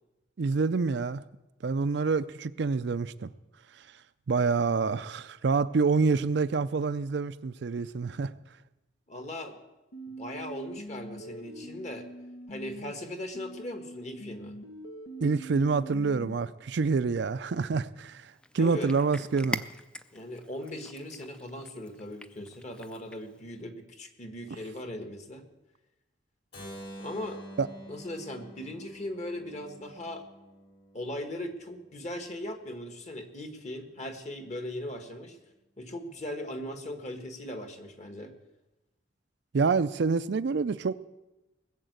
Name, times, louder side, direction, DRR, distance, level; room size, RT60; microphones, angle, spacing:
voice 1, 0.4-1.2 1.6-3.3 4.3-8.3 15.2-18.3 18.5-19.6 27.6-27.7 39.5-40.9, right 4 dB, 60° right, 0.5 m, -27 dB
voice 2, 9.1-9.6 10.2-12.1 12.5-14.6 18.5-19.0 20.1-25.4 27.0-27.4 27.9-30.3 30.9-35.4 35.8-38.3, left 1 dB, 35° left, 1.5 m, -39 dB
sound 1, 9.9-12.9 13.3-16.4, right 1 dB, 90° left, 1.5 m, -43 dB
Cat, 18.2-23.4, equal, 5° left, 0.4 m, -43 dB
Keyboard (musical), 26.5-32.4, equal, 55° left, 5.4 m, -48 dB
19.5 x 7.3 x 8.0 m
head